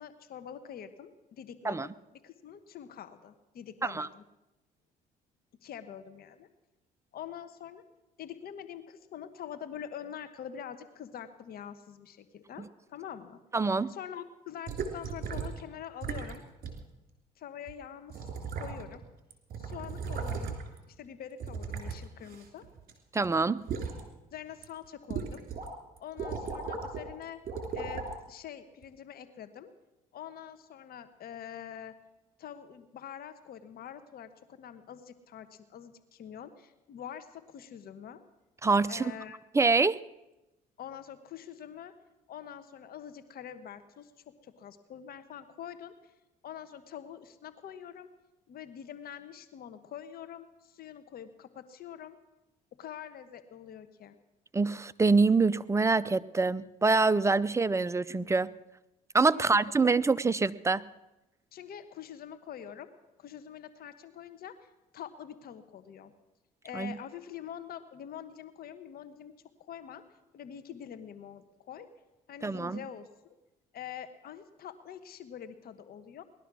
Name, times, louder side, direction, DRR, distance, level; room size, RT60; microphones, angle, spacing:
voice 1, 0.0-1.8 2.1-4.2 5.6-6.5 7.1-7.8 8.2-13.4 13.9-16.4 17.4-18.3 18.6-19.0 19.6-20.6 20.9-22.7 24.3-25.5 26.0-27.4 27.7-29.7 30.1-32.0 32.4-38.2 38.9-39.4 40.8-41.9 42.3-44.1 44.4-46.1 46.4-48.1 48.5-52.2 52.7-54.1 59.3-59.4 59.8-60.1 61.5-62.9 63.2-64.7 64.9-66.1 66.6-69.3 69.6-70.0 70.3-71.9 72.3-73.3 73.7-76.2, left 9 dB, 60° left, 10 dB, 1.3 m, -45 dB
voice 2, 13.5-13.9 23.1-23.6 38.6-39.1 39.5-40.0 54.5-58.5 59.1-60.8 66.7-67.0 72.4-72.8, right 3 dB, 15° right, 16 dB, 0.6 m, -25 dB
sound 1, 14.7-15.6 16.0-16.4 16.6-16.8 17.7-17.8 18.1-19.0 19.3-20.8 21.4-22.9 23.2-24.0 24.5-24.6 25.1-25.7 26.0-27.1 27.5-28.1 28.8-28.9, right 5 dB, 55° right, 3.4 m, -36 dB
19.0 x 12.0 x 6.2 m, 0.99 s
supercardioid pair, 80°, 17 cm